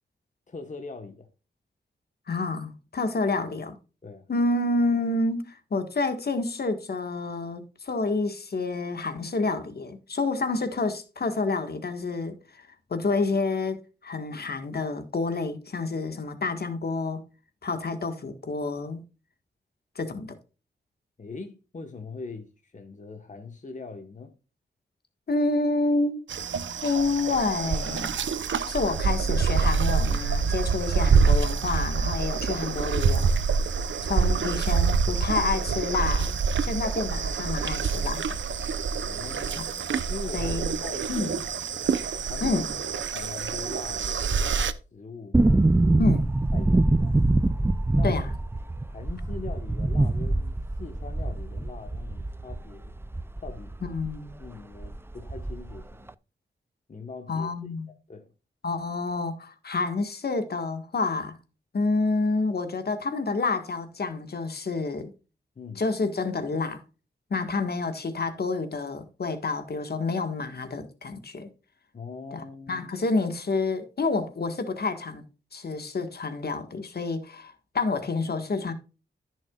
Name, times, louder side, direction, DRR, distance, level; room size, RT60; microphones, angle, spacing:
voice 1, 0.5-1.3 4.0-4.3 21.2-24.3 39.0-41.3 42.2-42.8 43.1-44.2 44.9-46.1 46.5-47.3 47.9-48.2 48.9-53.0 53.4-53.7 54.4-56.1 56.9-58.3 65.5-65.8 71.9-72.9, left 3 dB, 40° left, 1.3 m, -42 dB
voice 2, 2.3-3.8 4.3-12.4 12.9-17.2 17.6-19.0 19.9-20.3 25.3-26.3 26.8-28.1 28.6-33.3 34.0-38.4 39.6-39.7 40.3-40.7 41.1-41.3 42.4-42.7 46.0-46.3 48.0-48.3 53.8-54.4 57.3-57.9 58.6-61.4 61.7-65.1 65.8-66.8 67.3-71.5 72.3-75.2 75.5-78.7, left 3 dB, 55° left, 1.6 m, -28 dB
sound 1, 26.3-44.7, right 5 dB, 85° right, 0.8 m, -26 dB
sound 2, 45.3-54.2 54.4-54.5 54.8-55.8 56.1-56.2, right 2 dB, 10° right, 0.4 m, -24 dB
14.5 x 6.3 x 2.4 m
wide cardioid pair, 100°, 19 cm